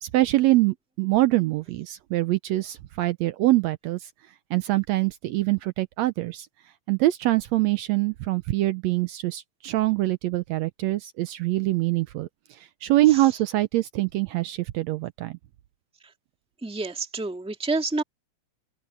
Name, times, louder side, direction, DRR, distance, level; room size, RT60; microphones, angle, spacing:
voice 1, 0.0-4.1 4.5-6.5 6.9-15.4, right 17 dB, 80° right, 1.7 m, -24 dB
voice 2, 16.6-18.0, right 3 dB, 5° right, 1.4 m, -28 dB
open air
omnidirectional pair, 3.4 m